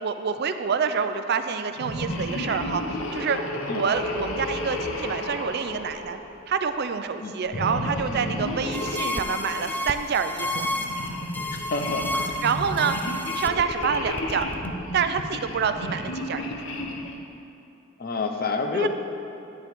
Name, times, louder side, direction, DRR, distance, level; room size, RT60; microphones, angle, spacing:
voice 1, 0.0-2.8 3.1-3.4 3.7-6.2 6.5-10.7 12.4-13.0 13.3-14.5 14.9-16.6 18.7-18.9, right 6 dB, 55° right, 9 dB, 0.4 m, -27 dB
sound 1, 1.8-6.6 7.5-9.8 10.4-17.2, left 1 dB, 90° left, 0.9 m, -32 dB
sound 2, 8.7-14.7, left 1 dB, 10° left, 0.3 m, -31 dB
voice 2, 11.5-12.4 18.0-18.9, left 4 dB, 50° left, 5 dB, 0.7 m, -28 dB
10.0 x 9.3 x 3.5 m, 2.8 s
head